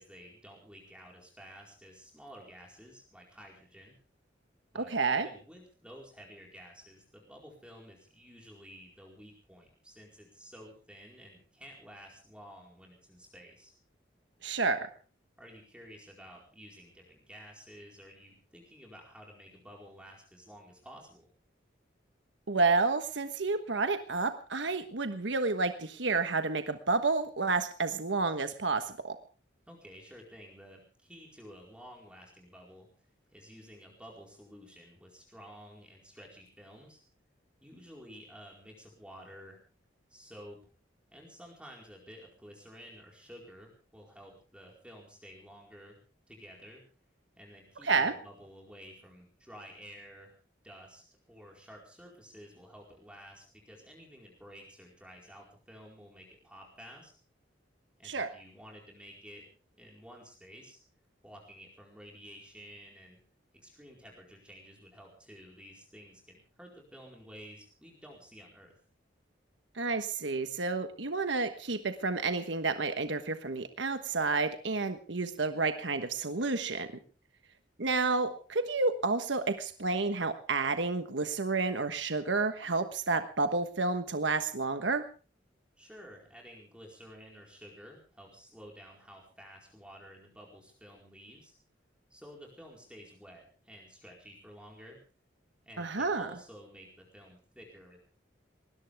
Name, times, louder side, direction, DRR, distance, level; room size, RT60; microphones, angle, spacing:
voice 1, 0.0-4.0 4.7-13.7 15.4-21.3 29.7-32.9 33.3-37.0 37.6-39.6 40.1-40.7 41.1-46.0 46.3-46.8 47.4-50.4 50.6-57.1 58.0-59.4 59.8-60.8 61.2-63.2 63.5-68.7 85.8-91.5 92.1-95.0 95.6-98.0, equal, 5° right, -1 dB, 4.6 m, -52 dB
voice 2, 4.7-5.3 14.4-14.9 22.5-29.2 47.8-48.1 58.0-58.3 69.7-76.9 77.8-85.0 95.8-96.3, right 3 dB, 75° right, 8 dB, 1.3 m, -30 dB
20.0 x 19.5 x 3.6 m, 0.37 s
head